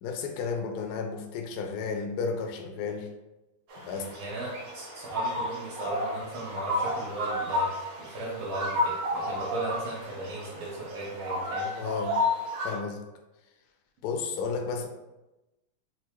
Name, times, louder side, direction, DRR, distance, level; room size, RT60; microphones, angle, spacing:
voice 1, 0.0-3.1 3.8-4.1 11.8-12.2 12.6-13.0 14.0-14.9, left 5 dB, 75° left, 4 dB, 0.9 m, -32 dB
sound 1, 3.7-12.8, left 1 dB, 60° right, 0.9 m, -32 dB
voice 2, 3.9-11.7, right 2 dB, 85° right, -7 dB, 1.6 m, -36 dB
4.2 x 2.3 x 2.9 m, 1.0 s
omnidirectional pair, 2.2 m